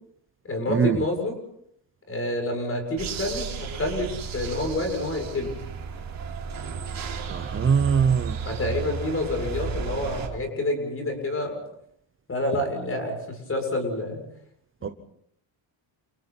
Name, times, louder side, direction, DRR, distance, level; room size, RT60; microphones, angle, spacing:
voice 1, 0.4-1.4 2.1-5.6 8.5-11.6 12.3-14.2 14.9-15.0, left 1 dB, 30° left, 4 dB, 7.2 m, -28 dB
sound 1, 3.0-10.3, right 5 dB, 45° right, 4.3 m, -33 dB
voice 2, 7.3-8.4 14.8-14.9, right 6 dB, 25° right, 8 dB, 0.9 m, -22 dB
30.0 x 29.5 x 4.3 m, 0.73 s
cardioid pair, 175°, 47 cm